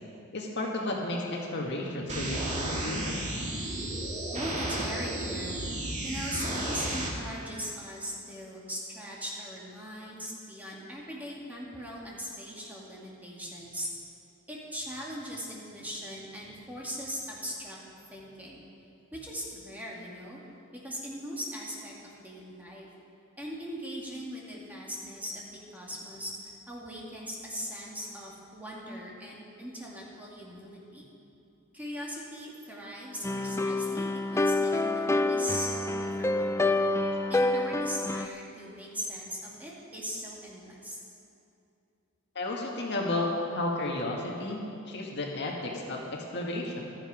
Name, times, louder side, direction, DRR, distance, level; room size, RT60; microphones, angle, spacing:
voice 1, 0.3-3.4 42.4-46.8, left 2 dB, 55° left, -1 dB, 1.9 m, -33 dB
sound 1, 2.1-7.1, right 1 dB, 35° right, 2.1 m, -33 dB
voice 2, 4.3-5.6 6.0-13.9 14.5-17.8 18.1-18.6 19.1-20.4 20.8-21.9 22.2-22.9 23.4-25.4 25.7-31.1 31.7-36.8 37.3-41.0, equal, 10° right, -4 dB, 2.4 m, -39 dB
sound 2, 33.2-38.3, left 2 dB, 15° left, 0.4 m, -27 dB
16.0 x 13.0 x 5.1 m, 2.7 s
head